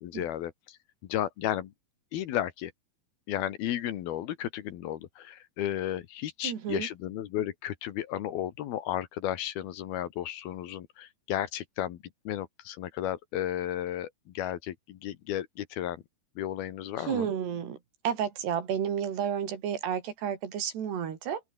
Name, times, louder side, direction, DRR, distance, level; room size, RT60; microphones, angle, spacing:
voice 1, 0.0-0.8 1.0-1.7 2.1-2.7 3.3-16.0 16.4-17.3, left 12 dB, 70° left, 3.1 m, -33 dB
voice 2, 6.4-6.9 17.1-17.8 18.1-21.4, right 8 dB, 75° right, 5.1 m, -31 dB
open air
omnidirectional pair, 4.8 m